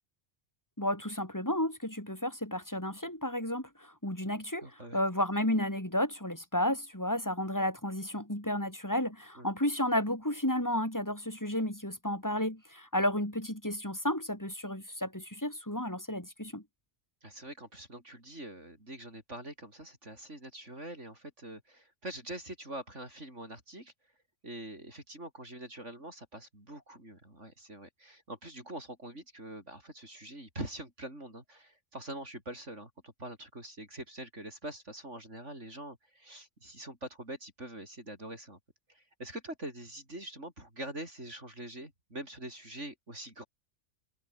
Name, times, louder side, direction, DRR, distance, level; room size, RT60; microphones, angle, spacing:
voice 1, 0.8-16.6, left 1 dB, 15° left, 4.5 m, -32 dB
voice 2, 4.6-5.0 9.4-9.5 17.2-23.9 24.4-38.6 38.9-43.4, right 1 dB, 65° right, 8.6 m, -44 dB
omnidirectional pair, 1.3 m